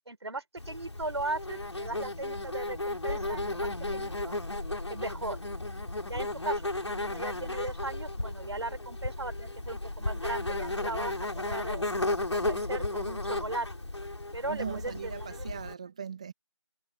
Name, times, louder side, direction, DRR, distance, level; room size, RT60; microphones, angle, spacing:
voice 1, 0.1-4.4 4.9-5.4 6.0-11.9 12.3-13.7 14.3-15.4, right 2 dB, 70° right, 4.4 m, -38 dB
Insect, 0.6-15.7, left 2 dB, 90° left, 4.9 m, -34 dB
voice 2, 14.5-16.3, right 7 dB, 15° right, 1.1 m, -39 dB
figure-of-eight pair, 175°, 14 cm